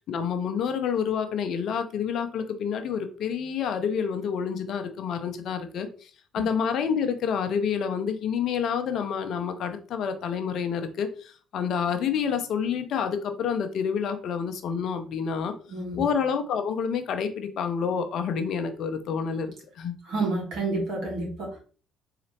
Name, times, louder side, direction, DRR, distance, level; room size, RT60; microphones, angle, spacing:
voice 1, 0.0-15.5 16.0-20.0, left 7 dB, 60° left, 8 dB, 0.5 m, -28 dB
voice 2, 15.7-16.0 20.1-21.6, right 2 dB, 65° right, -2 dB, 1.6 m, -29 dB
4.2 x 2.8 x 2.8 m, 0.39 s
hypercardioid pair, 50°, 0 cm